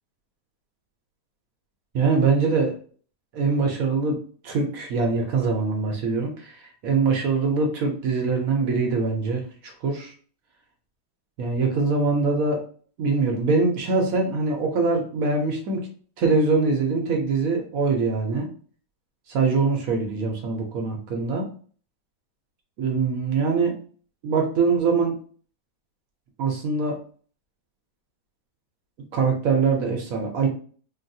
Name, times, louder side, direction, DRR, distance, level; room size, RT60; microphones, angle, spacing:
voice 1, 1.9-2.7 3.3-4.2 4.4-10.1 11.4-12.6 13.0-15.9 16.2-18.5 19.3-21.5 22.8-23.8 24.2-25.1 26.4-27.0 29.1-30.5, right 4 dB, 65° right, 2 dB, 1.0 m, -23 dB
3.9 x 2.2 x 2.6 m, 0.44 s
omnidirectional pair, 1.8 m